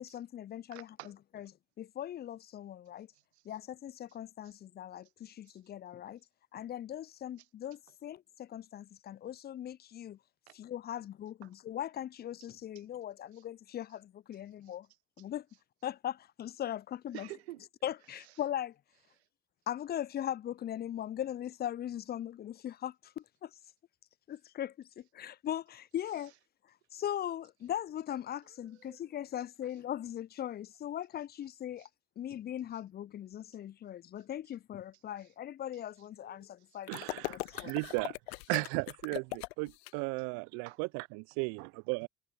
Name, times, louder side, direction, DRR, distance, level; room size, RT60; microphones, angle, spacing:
voice 1, 0.0-0.9 1.3-1.5 1.8-3.1 3.4-6.2 6.5-10.2 10.5-14.9 15.2-15.5 15.8-17.3 17.8-18.8 19.7-23.5 24.3-26.3 26.9-31.9 32.2-37.7, left 11 dB, 30° left, 0.5 m, -39 dB
voice 2, 0.7-1.5 3.1-3.6 4.4-4.6 5.2-5.6 7.4-7.5 10.5-10.6 11.4-11.5 12.7-12.8 13.3-13.4 14.6-14.8 15.2-15.3 17.1-17.7 18.1-18.4 19.1-19.3 26.1-26.3 28.6-29.0 31.8-31.9 35.2-35.3 35.7-36.8 37.2-37.3 37.7-37.8 40.6-40.8, right 16 dB, 75° right, 1.4 m, -52 dB
sound 1, 36.9-39.9, left 24 dB, 70° left, 1.1 m, -40 dB
voice 3, 36.9-38.2 38.5-42.1, right 32 dB, 60° right, 0.7 m, -35 dB
figure-of-eight pair, 60°, 32 cm